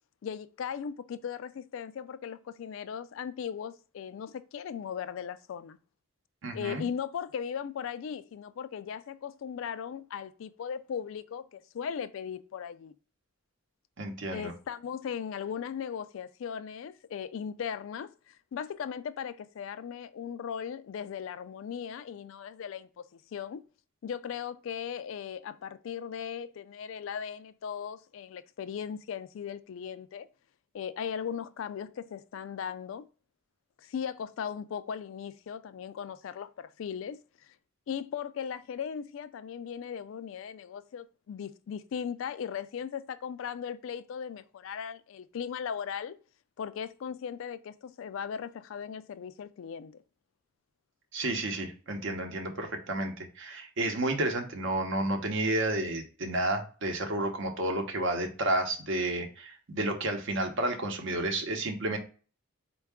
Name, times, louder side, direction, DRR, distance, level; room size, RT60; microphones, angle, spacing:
voice 1, 0.2-5.8 6.5-12.9 14.3-23.6 24.0-30.3 30.7-33.1 33.8-37.5 37.9-46.2 46.6-50.0, left 7 dB, 65° left, 0.3 m, -38 dB
voice 2, 6.4-6.8 14.0-14.5 51.1-62.0, right 2 dB, 60° right, 0.8 m, -31 dB
4.5 x 2.3 x 3.4 m
head